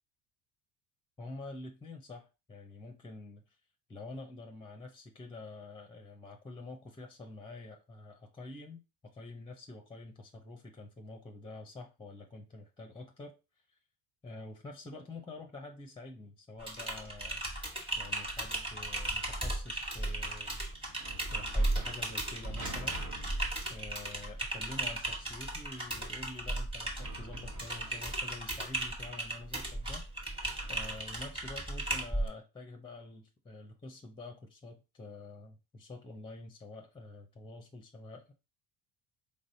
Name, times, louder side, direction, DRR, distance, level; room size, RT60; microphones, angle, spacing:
voice 1, 1.2-3.6 3.9-13.6 14.2-17.4 18.0-20.6 21.3-23.0 23.7-30.0 30.7-38.3, left 2 dB, 10° left, 4 dB, 0.6 m, -47 dB
Typing, 16.6-32.3, right 1 dB, 10° right, 1.3 m, -36 dB
sound 1, 19.9-31.6, right 1 dB, 40° right, 1.2 m, -49 dB
4.0 x 3.5 x 2.6 m, 0.29 s
supercardioid pair, 80°, 45 cm